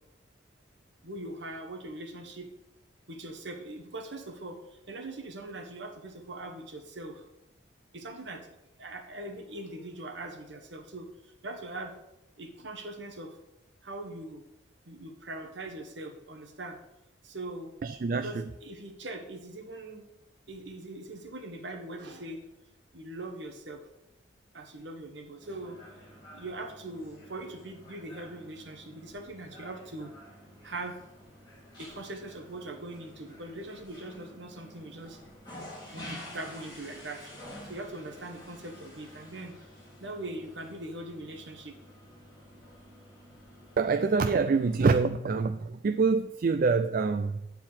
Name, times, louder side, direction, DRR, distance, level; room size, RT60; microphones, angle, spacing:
voice 1, 1.0-2.5 3.1-4.6 4.9-7.2 7.9-8.5 8.8-11.9 12.4-13.3 13.8-14.4 14.8-16.8 17.2-17.7 18.1-20.0 20.5-22.5 22.9-23.8 24.5-25.8 26.3-30.1 30.6-31.0 31.8-35.2 35.9-37.2 37.7-39.6 40.0-41.8, right 2 dB, 65° right, 1.4 m, -41 dB
voice 2, 17.8-18.4 43.8-47.4, right 4 dB, 45° right, 0.3 m, -26 dB
sound 1, 25.4-45.0, left 1 dB, 25° left, 3.5 m, -50 dB
9.7 x 4.5 x 7.2 m
head